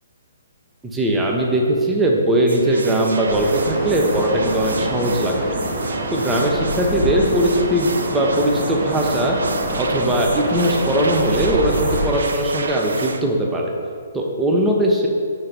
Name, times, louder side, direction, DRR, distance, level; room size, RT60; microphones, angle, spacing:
voice 1, 0.9-5.3 6.1-9.3 9.8-13.7 14.1-15.1, right 1 dB, 10° right, -1 dB, 0.7 m, -19 dB
sound 1, 2.5-13.2, right 3 dB, 80° right, 0.5 m, -32 dB
sound 2, 3.3-12.1, right 1 dB, 40° right, 1.4 m, -26 dB
5.6 x 4.6 x 5.2 m, 2.3 s
hypercardioid pair, 140°, 0 cm